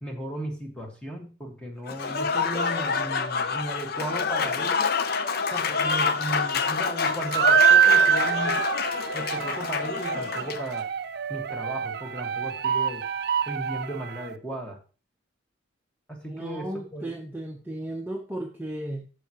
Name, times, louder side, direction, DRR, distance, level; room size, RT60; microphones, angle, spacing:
voice 1, 0.0-4.9 5.5-8.6 9.1-10.9 11.3-13.1 13.4-14.8 16.1-17.1, right 1 dB, 5° left, 1 dB, 1.5 m, -36 dB
Applause / Crowd, 1.9-10.7, left 5 dB, 50° left, 0.6 m, -27 dB
sound 1, 7.3-14.3, right 8 dB, 55° right, 0.5 m, -25 dB
voice 2, 16.3-19.1, right 1 dB, 10° right, 1 dB, 0.7 m, -35 dB
14.0 x 4.8 x 2.9 m, 0.36 s
head